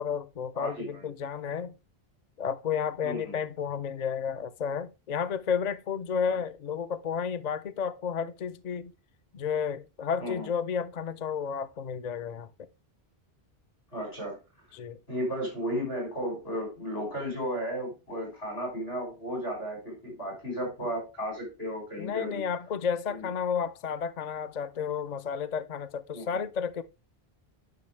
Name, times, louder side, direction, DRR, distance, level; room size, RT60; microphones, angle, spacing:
voice 1, 0.0-1.7 2.4-8.9 9.3-12.5 14.7-15.0 22.0-26.8, left 7 dB, 55° left, 0.5 m, -32 dB
voice 2, 0.6-1.1 3.0-3.4 6.3-6.4 10.2-10.5 13.9-14.4 15.1-22.4 23.1-23.2 26.1-26.4, equal, 75° left, 5.8 m, -34 dB
10.5 x 6.0 x 3.2 m
omnidirectional pair, 1.0 m